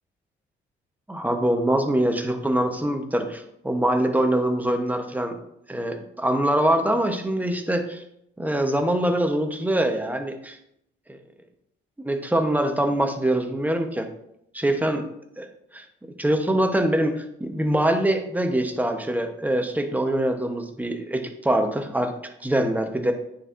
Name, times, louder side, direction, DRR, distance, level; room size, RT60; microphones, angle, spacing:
voice 1, 1.1-5.4 5.7-8.0 8.4-10.6 12.0-14.1 14.5-15.0 15.4-15.5 15.7-15.8 16.2-22.1 22.4-23.1, right 1 dB, 10° right, 5 dB, 0.8 m, -24 dB
9.7 x 4.4 x 2.5 m, 0.75 s
cardioid pair, 90°, 20 cm